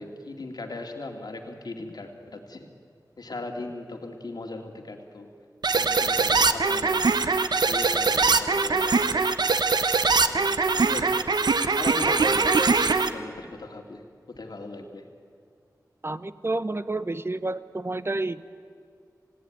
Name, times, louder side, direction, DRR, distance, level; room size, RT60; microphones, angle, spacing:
voice 1, 0.0-2.7 3.2-5.3 5.7-7.3 7.6-9.2 10.2-11.3 11.7-12.7 13.1-15.1, left 2 dB, 70° left, 3 dB, 2.4 m, -39 dB
sound 1, 5.6-13.1, right 4 dB, 85° right, 1.0 m, -22 dB
voice 2, 16.0-18.4, right 2 dB, 35° right, 14 dB, 0.8 m, -30 dB
28.5 x 17.0 x 9.3 m, 2.2 s
wide cardioid pair, 75°, 7 cm